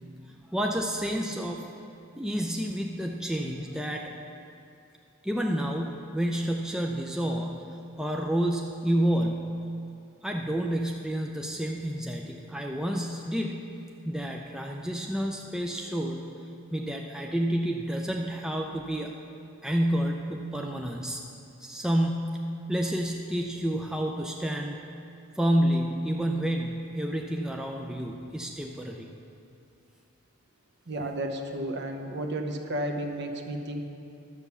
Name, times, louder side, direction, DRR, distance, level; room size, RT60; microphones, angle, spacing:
voice 1, 0.2-1.7 2.2-4.1 5.2-7.6 8.0-9.5 10.2-13.6 14.0-16.3 16.7-19.2 19.6-21.2 21.6-22.3 22.7-24.8 25.4-29.1, equal, 5° right, 1 dB, 0.4 m, -29 dB
voice 2, 30.9-33.8, right 1 dB, 50° right, 4 dB, 0.9 m, -32 dB
11.5 x 7.1 x 6.8 m, 2.6 s
head